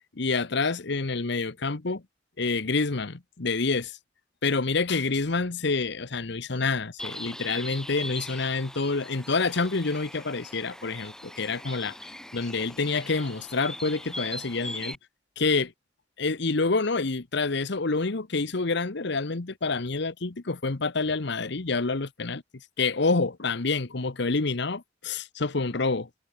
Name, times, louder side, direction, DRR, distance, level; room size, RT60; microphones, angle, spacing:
voice 1, 0.1-2.0 2.4-4.0 4.4-12.0 12.3-15.0 15.4-15.7 16.2-22.4 22.8-26.1, left 3 dB, 65° left, 1.1 m, -27 dB
Bird, 7.0-15.0, left 1 dB, 5° left, 2.2 m, -40 dB
head